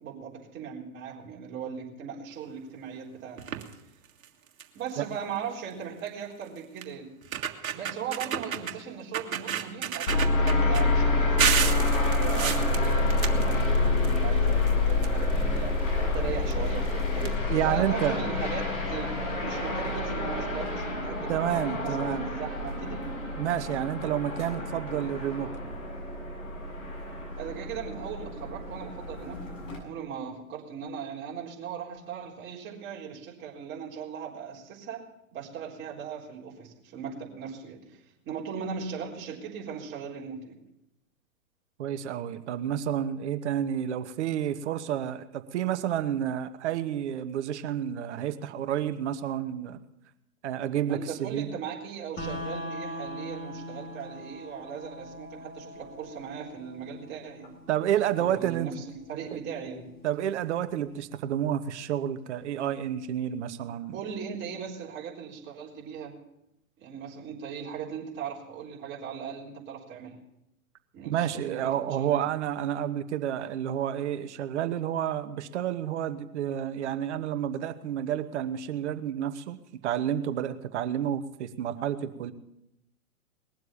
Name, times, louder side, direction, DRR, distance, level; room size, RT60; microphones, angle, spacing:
voice 1, 0.0-3.7 4.7-7.1 7.7-19.1 19.4-23.2 27.4-35.0 35.3-38.0 38.3-40.6 50.8-57.6 58.2-59.9 63.9-66.1 66.8-70.2 70.9-72.2, right 7 dB, 25° right, -3 dB, 4.0 m, -38 dB
sound 1, 3.4-3.7 4.2-4.3 4.6-4.9 6.1-6.2 6.8-6.9 7.2-8.8 9.1-10.8 11.4-14.2 14.5-15.6 16.5-16.6 16.9-17.0 17.2-17.3, right 8 dB, 70° right, 1.8 m, -30 dB
sound 2, 10.1-29.8, left 2 dB, 60° left, 7.9 m, -28 dB
voice 2, 17.2-18.2 21.3-22.4 23.4-25.8 41.8-49.8 50.4-51.5 57.7-58.7 60.0-64.0 71.0-82.3, right 10 dB, 50° right, 11 dB, 1.2 m, -30 dB
sound 3, 52.2-62.2, equal, 20° left, 2.6 m, -43 dB
20.5 x 7.8 x 7.1 m, 0.86 s
hypercardioid pair, 125°, 43 cm